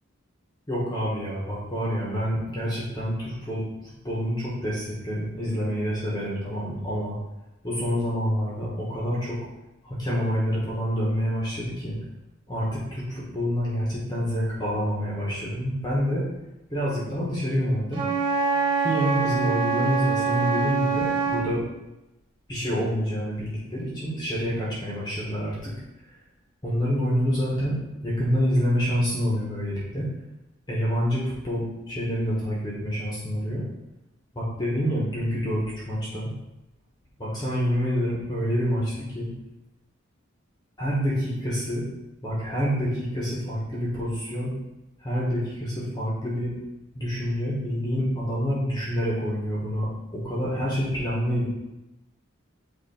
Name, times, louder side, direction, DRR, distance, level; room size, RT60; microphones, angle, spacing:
voice 1, 0.7-7.2 7.6-9.4 9.8-12.0 12.5-16.3 16.7-18.0 18.5-21.6 22.5-25.7 26.6-30.1 30.7-33.6 34.3-36.3 37.2-39.3 40.8-41.9 42.2-44.5 45.0-46.6 46.9-51.5, equal, 20° left, -6 dB, 1.3 m, -27 dB
Wind instrument woodwind instrument, 17.9-21.5, right 5 dB, 25° right, 1.4 m, -25 dB
8.0 x 3.0 x 4.4 m, 0.95 s
head